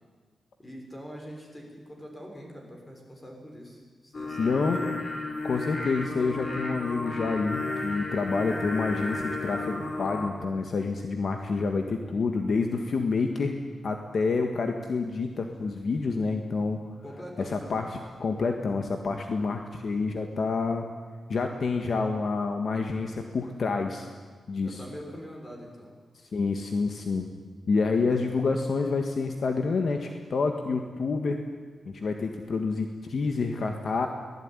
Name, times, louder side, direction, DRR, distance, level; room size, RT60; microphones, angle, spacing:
voice 1, 0.6-4.9 17.0-17.9 24.6-26.0, equal, 15° left, 1 dB, 6.0 m, -43 dB
Singing, 4.1-10.3, left 2 dB, 35° left, 4.4 m, -33 dB
voice 2, 4.4-4.8 5.4-13.6 13.8-16.8 17.5-17.8 18.2-20.9 21.3-24.0 24.5-24.8 26.3-27.3 27.7-31.4 31.8-34.1, left 4 dB, 55° left, 4 dB, 1.7 m, -28 dB
24.0 x 17.5 x 9.9 m, 1.5 s
wide cardioid pair, 145°, 0 cm